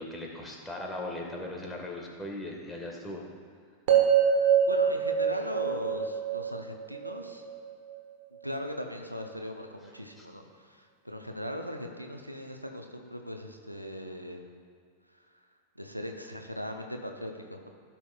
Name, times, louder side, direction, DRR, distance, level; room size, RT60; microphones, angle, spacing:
voice 1, 0.0-3.3 10.2-10.3, left 1 dB, 5° left, -1 dB, 1.5 m, -38 dB
sound 1, 3.9-8.0, right 7 dB, 50° right, 1.0 m, -25 dB
voice 2, 4.6-7.4 8.4-14.4 15.8-17.7, equal, 90° right, 4 dB, 0.6 m, -39 dB
16.0 x 5.8 x 2.3 m, 2.1 s
figure-of-eight pair, 90°, 0 cm